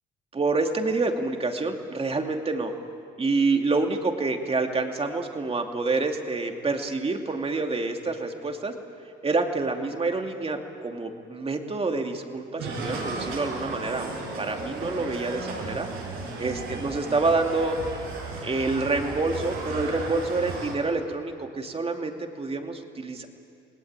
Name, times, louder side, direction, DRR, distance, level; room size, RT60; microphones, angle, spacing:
voice 1, 0.3-2.7 3.2-8.7 9.2-15.9 16.4-17.8 18.4-23.3, right 3 dB, 30° right, 4 dB, 2.6 m, -27 dB
sound 1, 12.6-20.8, right 3 dB, 90° right, 6.2 m, -35 dB
29.5 x 19.5 x 8.9 m, 2.5 s
cardioid pair, 90°, 20 cm